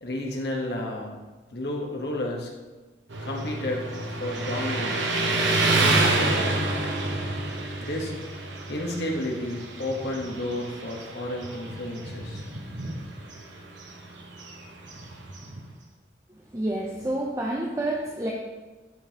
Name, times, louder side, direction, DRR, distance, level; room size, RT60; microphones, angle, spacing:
voice 1, 0.0-1.2 1.5-2.5 3.2-5.2 5.7-6.4 7.8-8.1 8.7-12.5, left 1 dB, 60° left, 0 dB, 1.2 m, -32 dB
Motorcycle, 3.1-15.7, right 2 dB, 80° right, 1.0 m, -28 dB
voice 2, 16.5-18.3, right 1 dB, 15° right, -2 dB, 0.6 m, -28 dB
10.5 x 5.2 x 2.9 m, 1.2 s
head